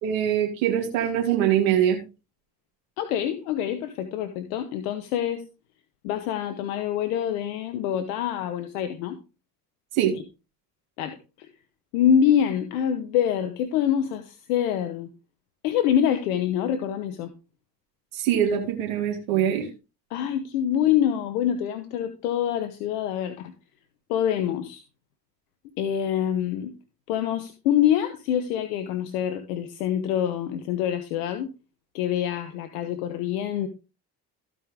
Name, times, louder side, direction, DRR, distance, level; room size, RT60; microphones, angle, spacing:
voice 1, 0.0-2.0 9.9-10.1 18.1-19.7, right 10 dB, 85° right, 1 dB, 2.5 m, -23 dB
voice 2, 3.0-5.4 6.0-9.2 10.1-10.2 11.0-11.5 11.9-15.1 15.6-17.3 20.1-23.5 24.1-24.8 25.8-26.7 27.1-31.5 31.9-33.7, left 9 dB, 90° left, 9 dB, 1.0 m, -25 dB
15.5 x 5.3 x 3.7 m, 0.29 s
hypercardioid pair, 60°, 43 cm